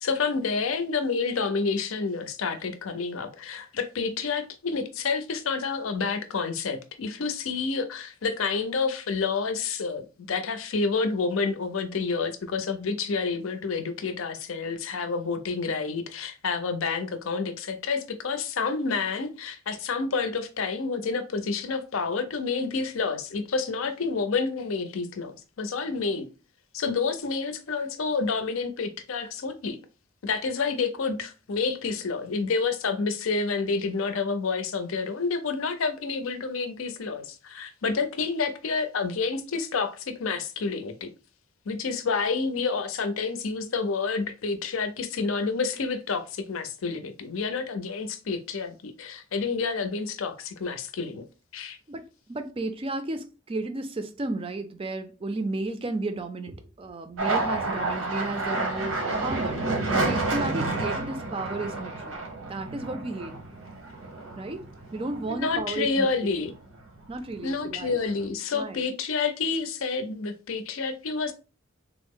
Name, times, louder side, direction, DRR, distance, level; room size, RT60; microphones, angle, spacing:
voice 1, 0.0-26.3 26.7-29.8 30.2-41.1 41.7-51.2 51.5-51.8 65.3-66.5 67.4-71.3, left 4 dB, 75° left, 0.5 m, -29 dB
voice 2, 52.3-59.0 59.2-59.6 59.9-62.2 62.5-63.3 64.4-64.6 64.9-66.3 67.1-68.0 68.5-68.8, right 2 dB, 25° right, 0.4 m, -33 dB
sound 1, 57.2-65.9 66.3-67.0 67.3-68.3, right 2 dB, 85° right, 0.9 m, -30 dB
3.4 x 2.0 x 3.6 m
head